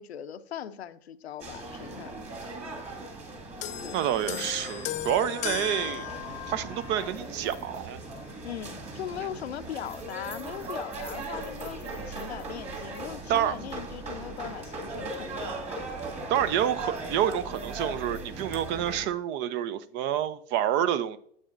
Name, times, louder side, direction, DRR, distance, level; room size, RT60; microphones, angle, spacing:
voice 1, 0.0-2.4 3.8-4.0 8.4-15.6, left 9 dB, 85° left, 0.7 m, -40 dB
sound 1, 1.4-19.1, right 2 dB, 20° right, 2.1 m, -39 dB
sound 2, 3.6-7.2 8.1-8.3, left 15 dB, 25° left, 0.4 m, -36 dB
voice 2, 3.9-6.1 6.5-8.0 13.3-13.6 16.3-21.2, right 10 dB, 35° right, 0.6 m, -28 dB
9.8 x 7.9 x 2.5 m
hypercardioid pair, 110°, 31 cm